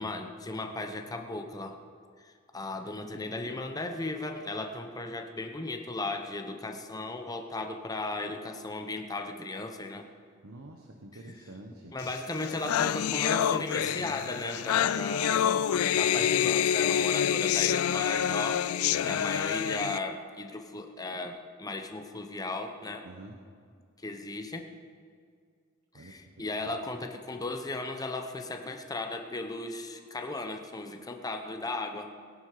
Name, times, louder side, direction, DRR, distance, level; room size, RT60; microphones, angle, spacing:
voice 1, 0.0-1.8 2.2-10.1 11.9-18.7 19.0-23.1 24.0-24.7 25.9-32.1, left 2 dB, 15° left, 5 dB, 0.8 m, -36 dB
voice 2, 10.4-11.9 18.9-19.2 23.0-23.4 25.9-26.7, right 1 dB, 75° right, 2 dB, 1.2 m, -48 dB
sound 1, 12.1-12.2 12.4-20.0, left 10 dB, 80° left, 0.3 m, -27 dB
19.0 x 11.0 x 5.0 m, 2.1 s
head